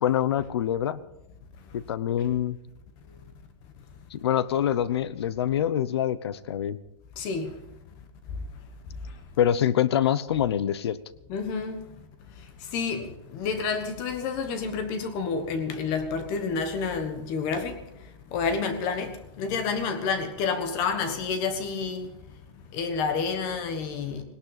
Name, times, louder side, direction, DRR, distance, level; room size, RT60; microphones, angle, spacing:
voice 1, 0.0-1.0 1.7-2.6 4.1-6.8 9.4-11.0, left 10 dB, 55° left, 0.9 m, -25 dB
voice 2, 7.2-7.5 11.3-11.9 12.7-17.8 18.3-22.1 22.7-24.2, left 5 dB, 25° left, 1.3 m, -29 dB
18.5 x 18.0 x 4.1 m
supercardioid pair, 175°, 16 cm